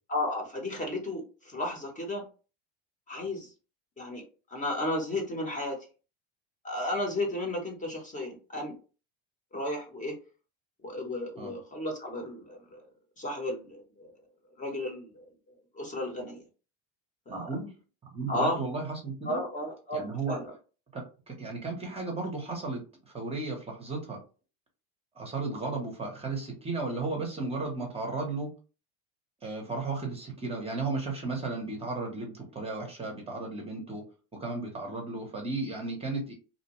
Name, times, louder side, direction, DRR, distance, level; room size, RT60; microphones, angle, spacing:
voice 1, 0.1-2.2 3.1-3.5 4.0-4.2 4.5-5.8 6.6-8.7 9.5-10.1 10.8-12.8 13.2-14.2 14.6-15.3 15.7-16.4 17.3-17.5 18.3-18.6 19.2-20.5, left 1 dB, 20° left, 1 dB, 0.8 m, -33 dB
voice 2, 17.3-17.7 18.1-19.4 19.9-20.4 20.9-24.2 25.2-28.5 29.4-36.3, right 3 dB, 15° right, 0 dB, 0.7 m, -34 dB
2.6 x 2.1 x 2.9 m, 0.35 s
supercardioid pair, 130°, 36 cm